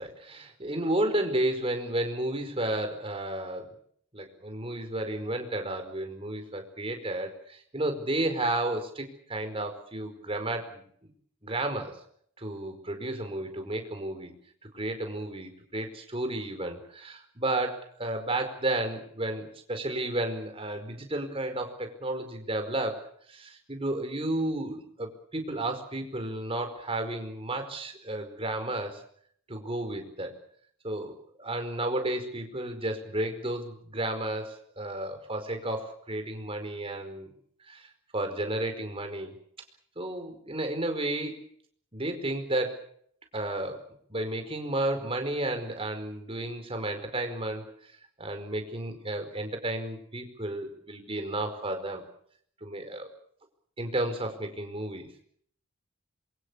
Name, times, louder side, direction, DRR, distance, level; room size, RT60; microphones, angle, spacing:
voice 1, 0.0-3.7 4.1-11.1 11.4-12.0 12.4-14.3 14.7-29.0 29.5-30.3 30.8-37.3 37.7-37.9 38.1-39.3 40.0-41.4 41.9-42.9 43.3-47.7 48.2-52.0 52.6-53.0 53.8-55.1, right 1 dB, 25° right, 6 dB, 4.9 m, -32 dB
27.0 x 23.5 x 7.0 m, 0.65 s
head